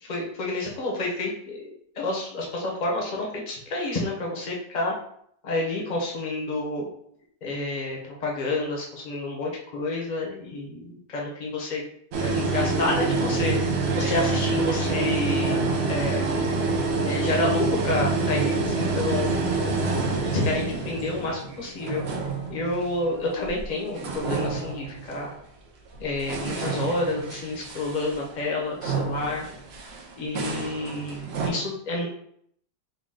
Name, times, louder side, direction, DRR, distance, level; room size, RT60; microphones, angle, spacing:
voice 1, 0.0-1.7 2.0-4.9 5.4-6.9 7.4-11.9 12.2-15.6 15.9-16.3 17.0-19.3 19.6-19.8 20.2-22.0 22.5-25.3 26.0-29.5 30.2-32.1, left 2 dB, 40° left, -2 dB, 0.7 m, -29 dB
sound 1, 12.1-23.7 24.0-25.3 25.9-31.5, right 3 dB, 75° right, 0.5 m, -27 dB
4.0 x 2.3 x 3.8 m, 0.67 s
omnidirectional pair, 1.9 m